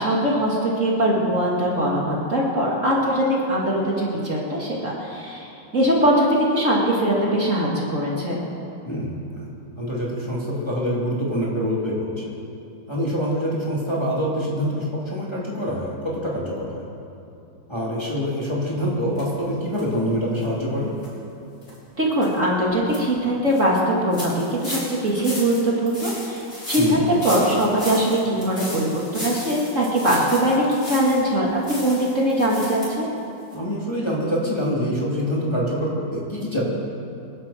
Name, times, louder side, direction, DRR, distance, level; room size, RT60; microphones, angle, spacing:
voice 1, 0.0-5.5 5.7-8.4 22.0-33.1, equal, 40° right, -4 dB, 2.5 m, -21 dB
voice 2, 8.8-9.4 9.8-12.1 12.9-16.8 17.7-20.9 26.8-27.1 33.5-36.6, equal, 15° left, -6 dB, 3.2 m, -25 dB
sound 1, 19.2-19.3 19.7-19.8 20.3-20.4 21.0-21.1 21.6-21.7 22.2-22.3 22.7-23.0 23.4-23.6 24.1-31.3 31.6-32.9 33.2-33.3 33.5-33.6, left 1 dB, 35° left, 5.5 m, -35 dB
27.5 x 11.0 x 4.5 m, 2.7 s
omnidirectional pair, 2.0 m